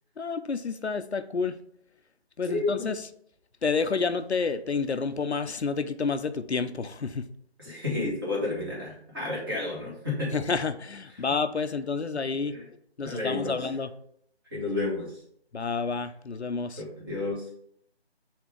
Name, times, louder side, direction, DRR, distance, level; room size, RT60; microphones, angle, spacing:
voice 1, 0.2-1.6 2.4-3.1 3.6-7.3 10.3-12.6 13.0-13.9 15.5-16.8, left 4 dB, 80° left, 10 dB, 0.6 m, -29 dB
voice 2, 7.6-10.3 12.5-12.6 13.0-13.6 14.5-15.1 16.8-17.4, left 2 dB, 20° right, -4 dB, 1.7 m, -31 dB
7.1 x 3.7 x 4.9 m, 0.67 s
figure-of-eight pair, 165°, 33 cm